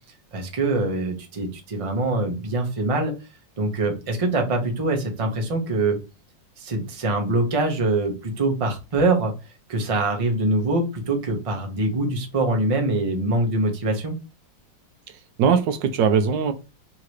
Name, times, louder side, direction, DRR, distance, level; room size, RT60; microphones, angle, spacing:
voice 1, 0.3-3.2 3.6-6.0 6.6-9.3 9.7-14.2, right 2 dB, 30° right, 3 dB, 0.6 m, -24 dB
voice 2, 15.1-16.5, right 6 dB, 70° right, 8 dB, 1.2 m, -21 dB
3.8 x 2.9 x 4.7 m, 0.29 s
omnidirectional pair, 2.2 m